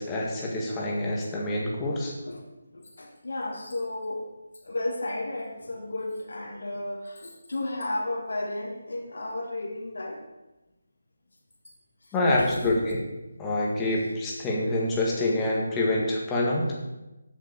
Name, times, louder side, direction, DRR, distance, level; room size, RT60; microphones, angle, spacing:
voice 1, 0.0-2.1 12.1-13.0 13.4-16.6, left 1 dB, 10° left, -3 dB, 1.8 m, -26 dB
voice 2, 2.7-4.3 4.6-10.2 12.0-12.7, left 2 dB, 70° left, -2 dB, 2.2 m, -33 dB
7.9 x 6.6 x 6.6 m, 1.0 s
figure-of-eight pair, 165°, 0 cm